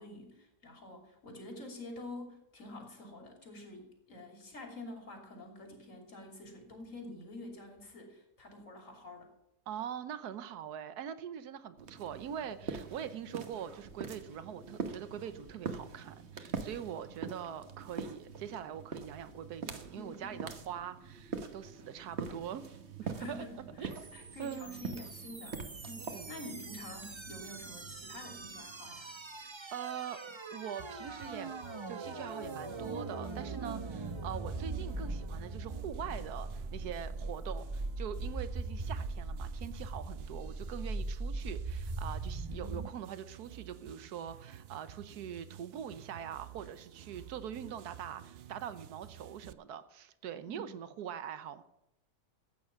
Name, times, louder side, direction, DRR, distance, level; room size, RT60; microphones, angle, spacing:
voice 1, 0.0-9.3 19.9-20.4 23.0-29.1 50.5-50.7, left 2 dB, 55° left, 3 dB, 3.3 m, -48 dB
voice 2, 9.7-22.6 23.1-23.5 23.8-24.0 24.4-24.9 26.1-26.3 29.4-30.2 30.5-31.5 31.9-51.6, right 9 dB, 90° right, 13 dB, 1.4 m, -43 dB
sound 1, 11.8-29.3, right 5 dB, 45° right, 1.3 m, -44 dB
sound 2, 23.9-42.9, right 3 dB, 25° right, 0.7 m, -41 dB
sound 3, 30.8-49.5, right 10 dB, 70° right, 0.6 m, -52 dB
14.0 x 8.9 x 5.8 m, 0.86 s
omnidirectional pair, 1.6 m